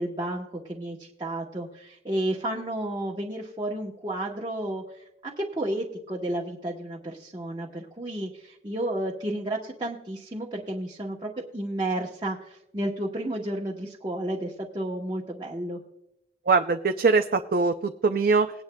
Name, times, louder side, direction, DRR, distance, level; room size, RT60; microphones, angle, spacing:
voice 1, 0.0-15.8, right 1 dB, 25° right, -4 dB, 1.0 m, -32 dB
voice 2, 16.5-18.5, right 4 dB, 55° right, 7 dB, 0.4 m, -22 dB
20.0 x 9.5 x 2.2 m, 0.83 s
head